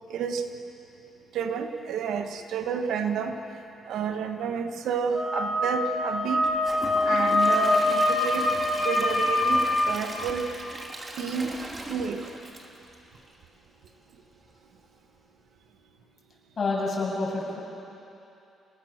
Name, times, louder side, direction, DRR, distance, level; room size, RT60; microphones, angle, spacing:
voice 1, 0.1-0.4 1.3-3.4 3.9-6.4 7.0-8.5 8.8-10.5 11.2-11.5 11.9-12.2, right 6 dB, 80° right, 6 dB, 1.6 m, -30 dB
Wind instrument woodwind instrument, 5.1-9.9, left 2 dB, 25° left, 4.9 m, -24 dB
Gurgling / Toilet flush / Trickle dribble, 6.4-13.5 13.9-14.0 14.4-14.5, right 1 dB, 25° right, 2.9 m, -39 dB
voice 2, 16.6-17.6, left 3 dB, 45° left, -3 dB, 8.0 m, -28 dB
28.5 x 19.5 x 6.7 m, 2.8 s
cardioid pair, 90°, 0 cm